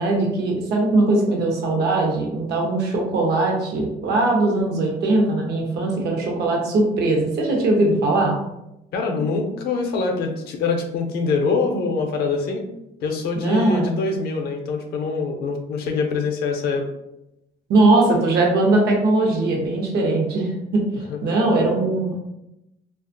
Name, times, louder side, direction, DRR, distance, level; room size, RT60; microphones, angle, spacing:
voice 1, 0.0-8.3 13.4-13.8 17.7-20.8 21.2-22.2, right 2 dB, 75° right, 0 dB, 0.7 m, -20 dB
voice 2, 8.9-12.7 13.0-16.9 21.0-21.2, left 4 dB, 70° left, 3 dB, 0.5 m, -24 dB
2.4 x 2.3 x 2.6 m, 0.88 s
cardioid pair, 110°, 17 cm